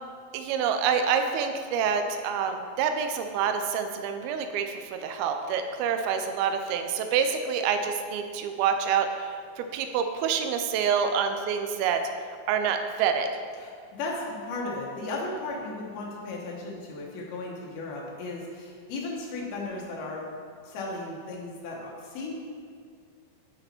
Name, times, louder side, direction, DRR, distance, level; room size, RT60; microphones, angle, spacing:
voice 1, 0.3-12.0 12.5-13.3, right 7 dB, 90° right, 6 dB, 2.5 m, -27 dB
voice 2, 13.6-20.2 20.7-22.4, left 2 dB, 90° left, -3 dB, 3.1 m, -35 dB
12.0 x 4.1 x 4.4 m, 2.1 s
omnidirectional pair, 4.3 m